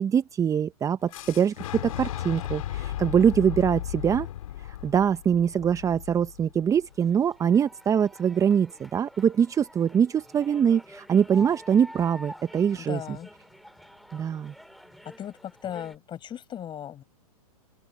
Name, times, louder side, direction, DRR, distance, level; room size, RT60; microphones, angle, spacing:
voice 1, 0.0-4.3 4.8-13.0 14.1-14.5, right 8 dB, 15° right, 0.8 m, -23 dB
Fire / Explosion, 1.1-7.0, left 12 dB, 65° left, 5.2 m, -35 dB
sound 1, 6.9-16.0, equal, ahead, 3.2 m, -48 dB
voice 2, 12.7-13.3 15.0-17.0, left 10 dB, 25° left, 6.5 m, -37 dB
open air
hypercardioid pair, 120°, 19 cm